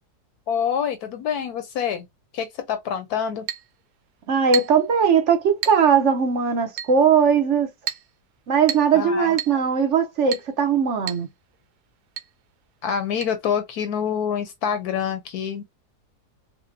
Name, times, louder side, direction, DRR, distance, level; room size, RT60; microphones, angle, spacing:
voice 1, 0.5-2.1 2.3-3.5 8.9-9.4 12.8-15.6, left 8 dB, 75° left, 1.1 m, -26 dB
Chink clink, 3.5-3.7 4.5-4.9 5.6-5.9 6.8-7.0 7.9-8.1 8.7-9.0 9.4-9.6 10.3-10.5 11.1-11.3 11.5-11.6 12.2-12.3 13.2-13.3, right 10 dB, 80° right, 1.2 m, -30 dB
voice 2, 4.3-7.7 8.5-11.3, right 6 dB, 55° right, 1.0 m, -19 dB
5.0 x 2.2 x 2.6 m
omnidirectional pair, 1.7 m